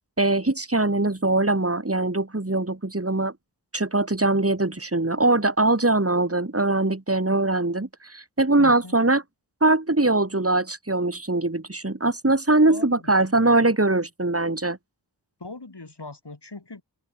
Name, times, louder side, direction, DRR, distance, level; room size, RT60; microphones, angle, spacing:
voice 1, 0.2-3.3 3.7-9.2 9.6-14.8, right 2 dB, 30° right, 3.3 m, -22 dB
voice 2, 8.6-9.0 12.7-13.7 15.4-16.8, left 3 dB, 65° left, 5.3 m, -40 dB
open air
wide cardioid pair, 45°, 43 cm